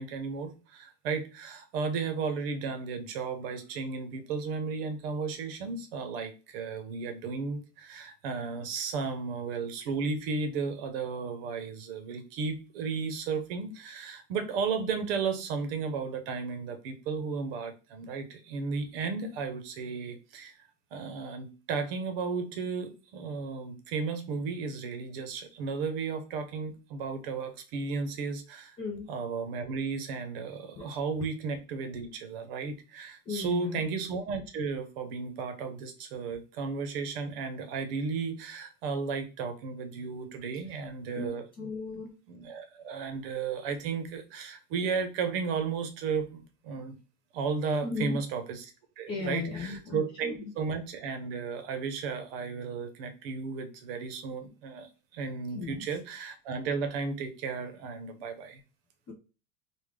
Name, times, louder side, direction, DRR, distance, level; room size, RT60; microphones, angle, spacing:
voice 1, 0.0-20.5 20.9-28.8 29.1-41.7 42.3-46.9 47.3-48.6 49.0-58.6, right 5 dB, 55° right, 8 dB, 0.8 m, -34 dB
voice 2, 28.8-29.1 30.8-30.9 33.3-33.8 41.2-41.3 41.6-42.1 47.8-48.2 49.1-50.0 50.2-50.5 55.5-55.8 59.1-59.2, left 4 dB, 15° left, -1 dB, 0.4 m, -35 dB
3.3 x 2.3 x 3.6 m, 0.32 s
supercardioid pair, 170°, 35 cm